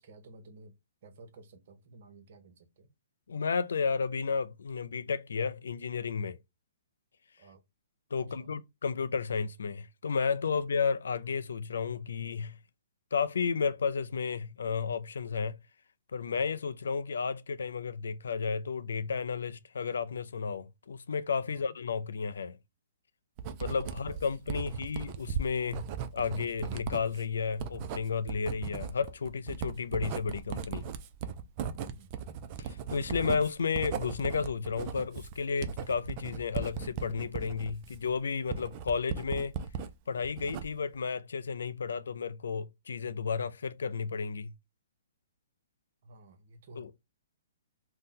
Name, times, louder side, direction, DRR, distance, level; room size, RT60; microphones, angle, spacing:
voice 1, 0.0-2.9 7.4-7.6 8.2-8.5 10.5-10.6 21.4-21.8 23.4-24.7 31.7-32.2 46.0-47.0, right 2 dB, 55° right, 0.7 m, -54 dB
voice 2, 3.3-6.4 8.1-12.6 13.1-15.6 16.1-22.6 23.6-30.9 32.6-39.6 40.1-44.5 46.8-46.9, left 5 dB, 75° left, 0.3 m, -32 dB
Writing, 23.4-39.9 40.2-40.9, right 7 dB, 35° right, 0.4 m, -38 dB
2.6 x 2.0 x 3.6 m
hypercardioid pair, 140°, 0 cm